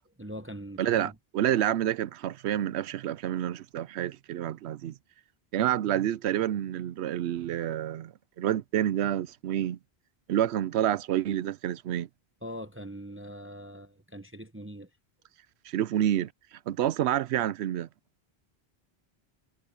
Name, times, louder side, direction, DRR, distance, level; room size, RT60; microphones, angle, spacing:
voice 1, 0.2-1.1 12.4-14.9, equal, 15° right, 0.8 m, -42 dB
voice 2, 0.8-4.9 5.5-9.8 10.3-12.1 15.6-16.3 16.7-17.9, right 11 dB, 85° right, 0.9 m, -28 dB
omnidirectional pair, 1.1 m